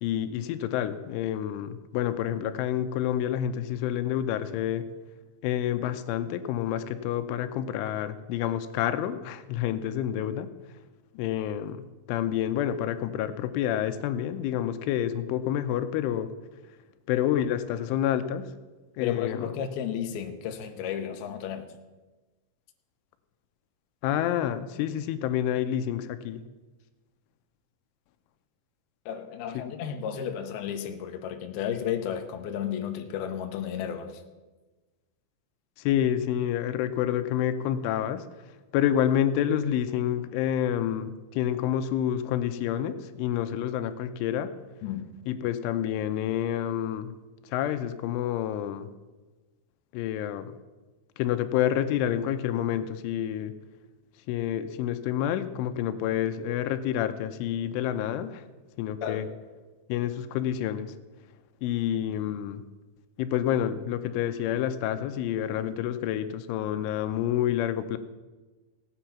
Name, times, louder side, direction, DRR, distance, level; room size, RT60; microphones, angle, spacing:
voice 1, 0.0-4.9 5.4-10.5 11.2-16.3 17.1-18.5 19.0-19.5 24.0-26.4 29.5-29.7 35.8-38.3 38.7-44.5 45.3-47.1 47.4-48.9 49.9-50.6 51.2-53.5 54.3-58.4 58.8-59.3 59.9-61.0 61.6-62.6 63.2-68.0, left 10 dB, 90° left, 10 dB, 3.1 m, -28 dB
voice 2, 19.0-21.7 29.1-34.2 44.8-45.1 59.0-59.2, left 9 dB, 70° left, 4 dB, 2.5 m, -33 dB
16.5 x 9.1 x 5.8 m, 1.2 s
omnidirectional pair, 5.5 m